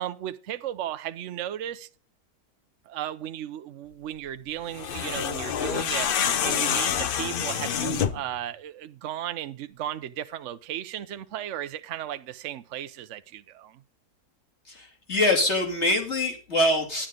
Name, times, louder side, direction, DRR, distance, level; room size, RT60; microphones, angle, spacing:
voice 1, 0.0-1.9 2.9-6.1 6.4-13.8, right 11 dB, 60° right, 0.8 m, -35 dB
sound 1, 4.7-8.3, left 8 dB, 65° left, 0.5 m, -27 dB
voice 2, 14.7-17.1, left 1 dB, 40° left, 2.9 m, -24 dB
10.5 x 10.0 x 3.7 m
omnidirectional pair, 1.7 m